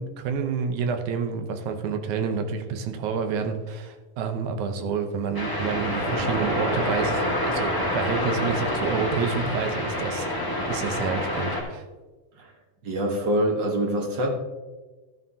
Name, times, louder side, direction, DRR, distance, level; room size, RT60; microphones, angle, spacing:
voice 1, 0.0-10.3 10.7-11.8, right 5 dB, 75° right, 7 dB, 2.2 m, -29 dB
sound 1, 5.3-11.6, left 1 dB, 10° left, 1.0 m, -27 dB
voice 2, 12.8-14.3, equal, 55° right, 2 dB, 1.3 m, -25 dB
13.0 x 9.3 x 2.8 m, 1.3 s
omnidirectional pair, 3.6 m